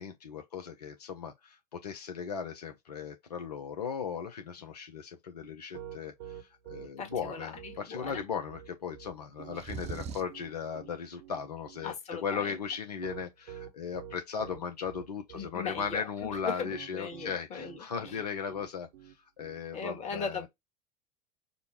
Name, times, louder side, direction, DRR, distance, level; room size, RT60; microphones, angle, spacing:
voice 1, 0.0-11.9 12.2-20.4, left 6 dB, 75° left, 0.7 m, -37 dB
Piano, 5.4-19.6, right 9 dB, 65° right, 0.9 m, -47 dB
voice 2, 7.0-8.2 11.8-12.6 15.3-16.1 16.4-18.2 19.7-20.5, left 5 dB, 35° left, 1.5 m, -38 dB
sound 1, 9.5-10.4, right 5 dB, 30° right, 0.7 m, -39 dB
5.2 x 2.2 x 2.9 m
figure-of-eight pair, 75°, 21 cm